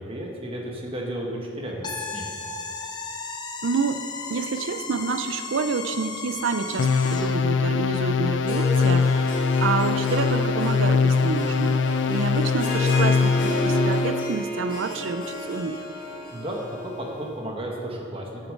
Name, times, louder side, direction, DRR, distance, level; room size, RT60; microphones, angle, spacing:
voice 1, 0.0-2.3 16.3-18.5, right 1 dB, 25° right, 0 dB, 1.2 m, -33 dB
sound 1, 1.8-7.4, left 4 dB, 20° left, 0.7 m, -35 dB
voice 2, 3.6-4.0 4.3-9.2 9.6-11.8 12.1-15.8, right 4 dB, 70° right, 9 dB, 0.4 m, -28 dB
sound 2, 6.8-14.3, left 5 dB, 65° left, 0.4 m, -22 dB
Harp, 8.3-17.4, equal, 40° left, 2.1 m, -32 dB
8.5 x 6.4 x 6.4 m, 2.4 s
head